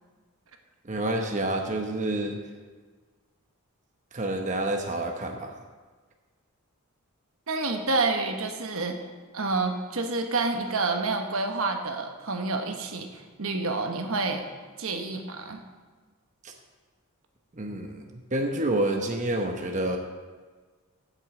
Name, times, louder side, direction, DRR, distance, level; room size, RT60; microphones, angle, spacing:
voice 1, 0.8-2.4 4.1-5.5 16.4-16.5 17.5-20.0, right 1 dB, 35° right, 2 dB, 0.9 m, -28 dB
voice 2, 7.5-9.0 9.3-14.4 14.8-15.6, right 3 dB, 70° right, 4 dB, 1.1 m, -28 dB
8.3 x 7.6 x 7.7 m, 1.4 s
head